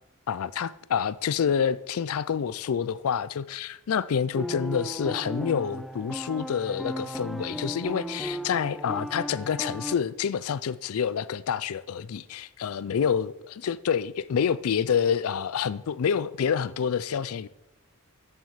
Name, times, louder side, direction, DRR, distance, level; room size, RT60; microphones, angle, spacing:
voice 1, 0.3-13.3 13.6-17.5, left 7 dB, 75° left, 0.4 m, -27 dB
sound 1, 4.4-9.9, equal, ahead, 0.4 m, -35 dB
13.5 x 6.2 x 5.6 m
head